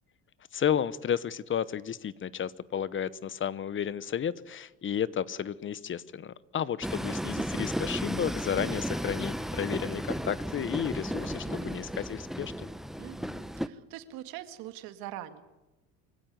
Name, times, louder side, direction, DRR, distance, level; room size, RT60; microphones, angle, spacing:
voice 1, 0.5-12.7, left 8 dB, 35° left, 18 dB, 1.0 m, -32 dB
Train, 6.8-13.7, equal, ahead, 0.8 m, -34 dB
voice 2, 11.4-11.8 13.0-15.4, right 13 dB, 75° right, 9 dB, 2.1 m, -43 dB
24.5 x 16.0 x 9.6 m, 1.0 s
supercardioid pair, 100°, 35 cm